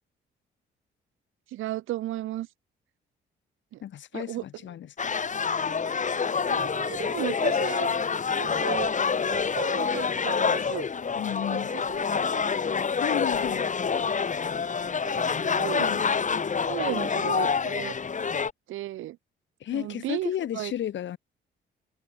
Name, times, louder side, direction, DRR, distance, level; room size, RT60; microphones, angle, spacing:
voice 1, 1.5-2.5 3.7-3.8 4.1-4.4 6.5-7.9 8.3-8.9 9.2-10.9 11.4-11.6 11.9-12.5 15.0-15.9 16.7-18.0 18.7-19.2 19.7-20.7, right 15 dB, 85° right, 4.5 m, -35 dB
voice 2, 3.8-5.1 11.2-11.7 13.0-13.7 15.8-16.1 19.6-21.2, left 11 dB, 70° left, 5.7 m, -33 dB
sound 1, 5.0-18.5, left 5 dB, 40° left, 4.2 m, -27 dB
open air
cardioid pair, 90°, 20 cm